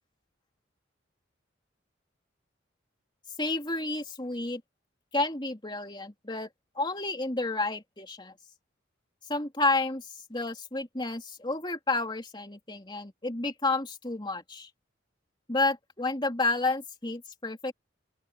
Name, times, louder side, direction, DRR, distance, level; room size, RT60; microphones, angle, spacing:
voice 1, 3.4-4.6 5.1-6.5 6.7-8.3 9.3-14.7 15.5-17.7, left 2 dB, 25° left, 2.9 m, -30 dB
open air
head